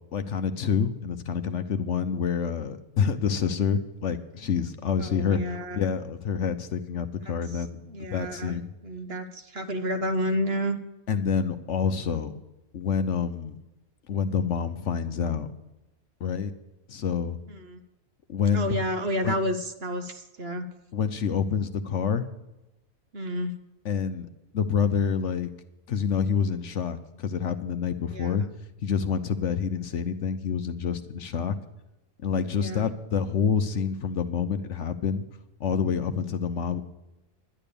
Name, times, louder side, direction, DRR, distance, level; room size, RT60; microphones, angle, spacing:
voice 1, 0.1-8.7 11.1-12.3 12.7-13.6 14.1-15.5 16.2-16.5 16.9-17.4 18.3-18.8 19.2-19.4 20.9-22.3 23.8-24.3 24.5-25.5 25.9-28.5 28.8-31.6 32.2-35.2 35.6-36.8, left 6 dB, 60° left, 9 dB, 1.0 m, -27 dB
voice 2, 5.0-5.9 7.2-8.6 8.8-10.8 17.5-17.8 18.5-20.7 23.1-23.5 28.1-28.5 32.5-32.9, equal, 50° right, 8 dB, 1.1 m, -31 dB
11.0 x 11.0 x 6.8 m, 0.99 s
omnidirectional pair, 1.5 m